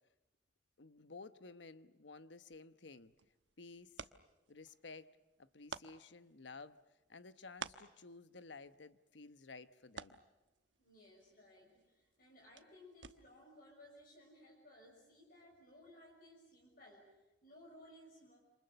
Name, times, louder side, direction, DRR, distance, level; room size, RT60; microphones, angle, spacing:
voice 1, 0.8-3.1 3.6-4.1 4.5-6.8 7.1-10.2, left 3 dB, 80° left, 1.1 m, -54 dB
sound 1, 2.8-13.5, right 5 dB, 85° right, 1.1 m, -55 dB
voice 2, 10.8-18.4, left 1 dB, 50° left, 6.3 m, -60 dB
28.0 x 27.0 x 6.8 m
head